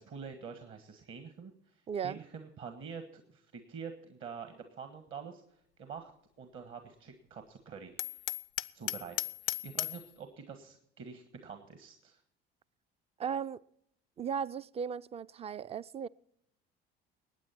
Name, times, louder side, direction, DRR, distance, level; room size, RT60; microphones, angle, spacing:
voice 1, 0.0-6.1 6.4-8.2 8.7-9.2 9.4-12.2, right 6 dB, 45° right, 1.5 m, -47 dB
voice 2, 1.9-2.2 13.2-13.6 14.2-16.1, right 7 dB, 20° right, 0.4 m, -36 dB
Hammer, 8.0-10.1, left 18 dB, 75° left, 0.4 m, -36 dB
20.5 x 8.9 x 4.4 m
figure-of-eight pair, 60°, 29 cm